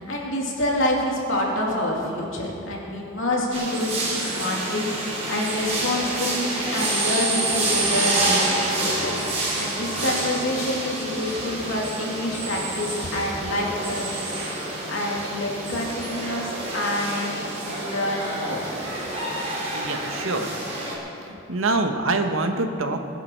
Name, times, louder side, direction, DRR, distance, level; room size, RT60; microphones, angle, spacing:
voice 1, 0.0-9.2 9.6-14.3 14.9-18.8, left 1 dB, 70° left, -2 dB, 2.7 m, -27 dB
sound 1, 3.5-21.0, right 2 dB, 30° right, 2.7 m, -28 dB
voice 2, 19.7-20.5 21.2-23.1, right 2 dB, 85° right, 6 dB, 1.2 m, -25 dB
21.0 x 10.5 x 4.6 m, 2.9 s
head